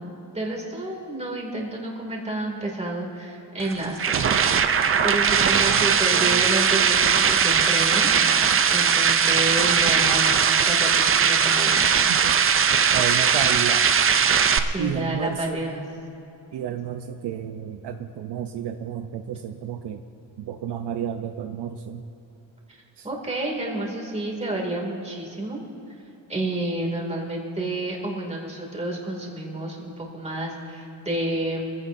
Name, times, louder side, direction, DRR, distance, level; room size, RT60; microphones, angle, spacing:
voice 1, 0.0-4.7 5.0-11.9 14.6-15.8 22.7-22.8 23.0-25.6 26.3-31.7, right 1 dB, 15° right, -1 dB, 2.6 m, -30 dB
sound 1, 3.6-14.6, right 7 dB, 30° right, 0.5 m, -19 dB
voice 2, 5.7-6.5 12.1-12.4 12.9-13.9 14.8-15.6 16.5-20.0 20.4-22.0 23.0-23.1, right 9 dB, 65° right, 6 dB, 0.7 m, -31 dB
25.0 x 15.5 x 2.7 m, 3.0 s
cardioid pair, 160°, 44 cm